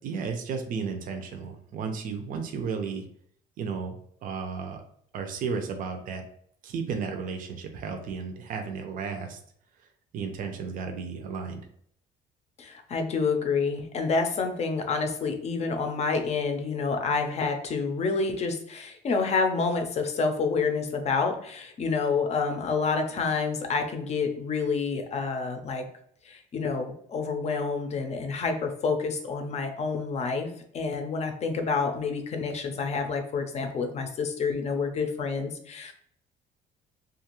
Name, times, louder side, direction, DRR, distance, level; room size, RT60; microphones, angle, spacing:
voice 1, 0.0-3.0 3.6-4.0 4.2-4.8 5.1-6.2 6.6-9.4 10.1-11.6, right 5 dB, 55° right, 4 dB, 0.5 m, -33 dB
voice 2, 12.6-25.8 26.2-35.9, left 4 dB, 40° left, 5 dB, 0.5 m, -28 dB
2.5 x 2.4 x 2.9 m, 0.65 s
cardioid pair, 110°, 17 cm